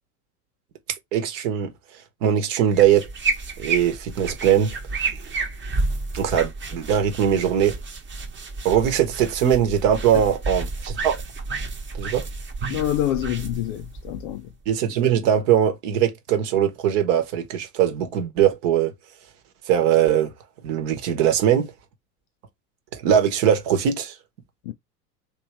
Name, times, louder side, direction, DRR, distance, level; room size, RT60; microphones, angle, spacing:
voice 1, 1.1-1.7 2.2-3.1 3.6-4.7 6.1-7.8 8.6-11.2 12.0-12.3 14.7-18.9 19.7-20.3 20.6-21.7 22.9-24.1, right 9 dB, 50° right, 1.2 m, -21 dB
sound 1, 2.7-14.6, right 3 dB, 25° right, 1.1 m, -31 dB
voice 2, 12.7-14.5 24.7-24.8, left 13 dB, 35° left, 0.4 m, -26 dB
3.3 x 3.0 x 3.0 m
figure-of-eight pair, 85°, 48 cm